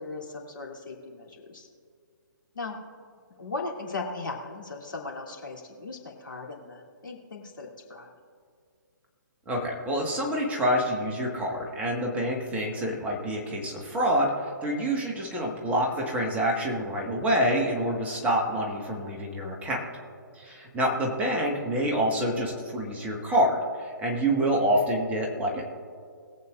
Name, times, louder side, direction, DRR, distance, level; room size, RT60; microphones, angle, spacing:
voice 1, 0.0-1.7 2.5-2.8 3.4-8.1, left 3 dB, 70° left, 0 dB, 2.8 m, -38 dB
voice 2, 9.5-19.8 20.3-25.6, equal, 10° right, -1 dB, 1.6 m, -27 dB
21.5 x 8.2 x 2.5 m, 2.2 s
figure-of-eight pair, 135°, 11 cm